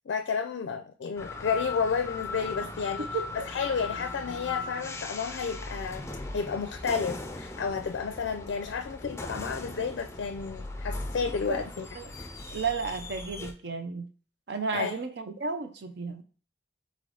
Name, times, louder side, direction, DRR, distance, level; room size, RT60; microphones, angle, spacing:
voice 1, 0.1-3.1 3.3-11.9 12.2-12.3 14.7-15.0, left 5 dB, 80° left, 0.4 m, -31 dB
sound 1, 1.2-13.5, left 3 dB, 15° left, 0.4 m, -39 dB
voice 2, 12.5-14.1 14.5-16.2, right 4 dB, 65° right, 0.5 m, -33 dB
4.0 x 3.2 x 3.9 m
head